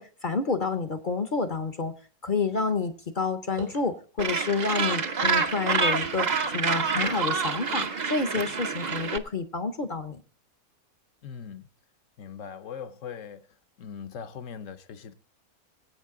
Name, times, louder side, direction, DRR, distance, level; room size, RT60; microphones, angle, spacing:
voice 1, 0.0-1.9 2.2-6.3 6.5-10.2, left 4 dB, 45° left, 0.7 m, -29 dB
sound 1, 3.6-3.9 4.6-5.0 5.7-6.2 7.0-7.5 8.2-8.5, right 4 dB, 80° right, 3.0 m, -42 dB
Gull seagull, 4.2-9.2, right 5 dB, 40° right, 0.7 m, -27 dB
voice 2, 11.2-11.7 12.2-13.5 13.8-15.1, left 7 dB, 65° left, 1.1 m, -40 dB
22.5 x 8.2 x 3.7 m
omnidirectional pair, 1.6 m